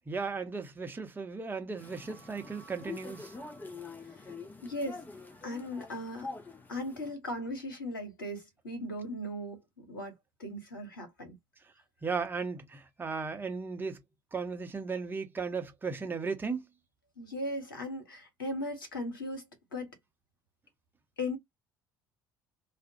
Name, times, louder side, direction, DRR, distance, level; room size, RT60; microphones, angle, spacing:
voice 1, 0.1-3.3 12.0-14.0 14.3-16.7, right 4 dB, 20° right, 0.7 m, -36 dB
sound 1, 1.8-7.1, left 4 dB, 15° left, 0.6 m, -46 dB
voice 2, 4.6-5.0 5.4-6.3 6.7-10.1 10.4-11.4 17.2-19.9 21.2-21.4, left 1 dB, 75° left, 0.9 m, -38 dB
2.3 x 2.0 x 2.6 m
figure-of-eight pair, 55°, 11 cm